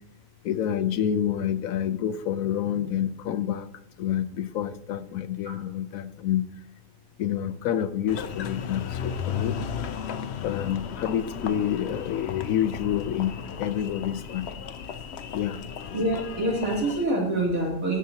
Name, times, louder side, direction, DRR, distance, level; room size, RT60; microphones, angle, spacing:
voice 1, 0.4-3.7 4.0-6.5 7.2-9.6 10.4-14.5 15.3-15.6, left 10 dB, 85° left, 12 dB, 1.1 m, -28 dB
Engine, 8.1-17.0, left 7 dB, 60° left, 0.8 m, -35 dB
voice 2, 15.9-18.0, right 1 dB, 80° right, -4 dB, 3.7 m, -26 dB
19.5 x 7.3 x 2.8 m, 0.80 s
omnidirectional pair, 1.4 m